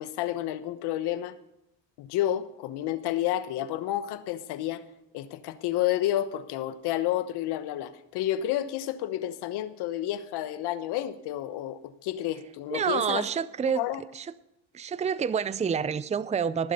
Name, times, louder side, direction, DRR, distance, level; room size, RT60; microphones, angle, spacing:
voice 1, 0.0-1.3 2.0-4.8 5.1-13.2 13.8-14.0, left 13 dB, 80° left, 1.1 m, -30 dB
voice 2, 12.7-13.9 14.1-14.3 14.7-16.7, right 7 dB, 15° right, 0.5 m, -28 dB
19.0 x 7.5 x 5.4 m
supercardioid pair, 80°, 39 cm